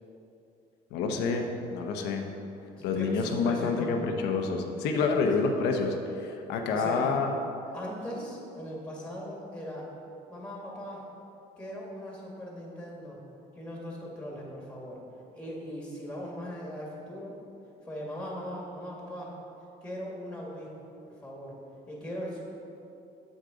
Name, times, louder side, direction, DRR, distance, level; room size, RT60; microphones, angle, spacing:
voice 1, 0.9-2.3 2.8-7.3, left 4 dB, 85° left, 3 dB, 0.9 m, -28 dB
voice 2, 2.8-3.9 4.9-5.2 6.7-7.2 7.7-9.9 10.3-11.0 11.6-13.2 13.6-15.0 15.3-17.4 17.9-19.3 19.8-20.7 21.0-21.6 21.9-22.4, equal, 5° left, -3 dB, 1.9 m, -39 dB
7.3 x 6.5 x 5.1 m, 2.8 s
cardioid pair, 110°, 17 cm